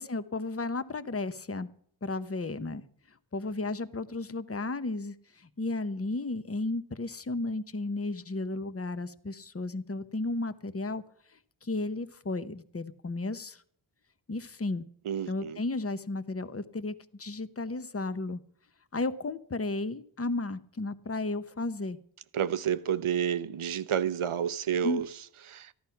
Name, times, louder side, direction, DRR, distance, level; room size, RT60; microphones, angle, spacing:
voice 1, 0.0-1.7 2.0-2.8 3.3-11.0 11.6-13.6 14.3-14.8 15.3-18.4 18.9-22.0 24.8-25.0, left 2 dB, 30° left, 1.0 m, -33 dB
voice 2, 15.0-15.6 22.3-25.1 25.5-25.7, right 8 dB, 85° right, 0.8 m, -30 dB
14.5 x 11.0 x 5.8 m
cardioid pair, 50°, 48 cm